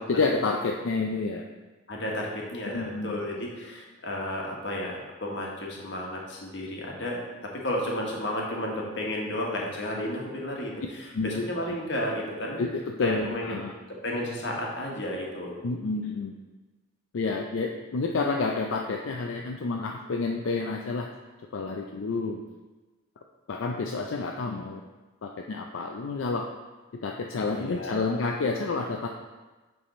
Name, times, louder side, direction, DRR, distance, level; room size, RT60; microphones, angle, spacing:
voice 1, 0.1-1.4 2.6-3.2 11.1-11.7 12.6-13.7 15.6-16.3 17.1-21.1 21.5-22.4 23.5-24.8 25.2-26.5 27.0-29.1, left 3 dB, 85° left, 2 dB, 0.4 m, -29 dB
voice 2, 1.9-12.6 13.0-13.5 14.0-15.6 27.5-28.0, left 1 dB, 60° left, -2 dB, 1.2 m, -33 dB
7.8 x 3.4 x 4.2 m, 1.2 s
head